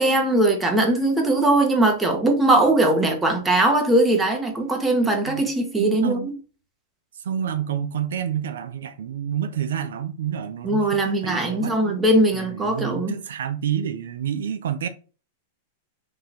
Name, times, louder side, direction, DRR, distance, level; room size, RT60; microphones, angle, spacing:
voice 1, 0.0-6.3 10.6-13.1, right 1 dB, 10° right, 1.2 m, -20 dB
voice 2, 5.8-6.3 7.2-12.0 12.3-14.9, right 9 dB, 85° right, 0.5 m, -29 dB
3.8 x 2.8 x 4.1 m
hypercardioid pair, 130°, 0 cm